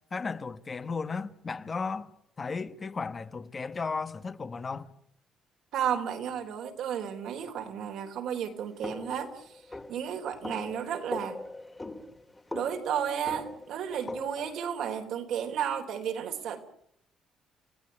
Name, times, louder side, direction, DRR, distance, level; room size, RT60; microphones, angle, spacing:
voice 1, 0.1-2.1 2.4-4.9, left 4 dB, 30° left, 1.2 m, -35 dB
voice 2, 5.7-9.4 9.9-11.4 12.5-16.6, right 8 dB, 75° right, 3.7 m, -33 dB
sound 1, 8.8-14.6, left 2 dB, 15° left, 2.1 m, -41 dB
30.0 x 16.0 x 9.9 m
cardioid pair, 125°, 0 cm